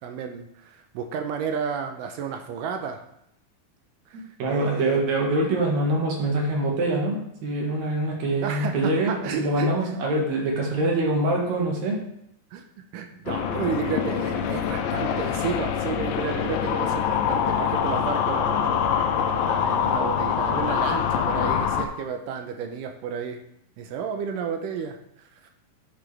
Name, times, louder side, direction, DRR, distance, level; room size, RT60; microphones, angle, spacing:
voice 1, 0.0-3.0 4.1-5.1 8.4-9.9 12.5-12.6 12.9-23.4 23.8-25.5, right 6 dB, 80° right, 5 dB, 2.2 m, -32 dB
voice 2, 4.4-12.0, right 2 dB, 55° right, -1 dB, 2.6 m, -24 dB
teeth brushing, 13.3-21.8, left 8 dB, 80° left, 2.2 m, -25 dB
10.5 x 6.1 x 3.3 m, 0.76 s
omnidirectional pair, 4.1 m